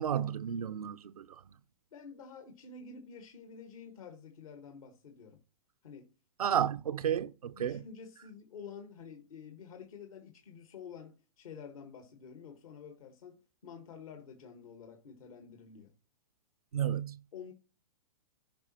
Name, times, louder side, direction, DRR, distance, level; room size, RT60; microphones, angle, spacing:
voice 1, 0.0-1.4 6.4-7.8 16.7-17.2, right 9 dB, 85° right, 0.4 m, -32 dB
voice 2, 1.9-5.4 5.8-6.1 6.4-6.6 7.5-15.9 17.3-17.5, left 6 dB, 70° left, 1.5 m, -49 dB
15.5 x 5.2 x 2.8 m
hypercardioid pair, 120°, 18 cm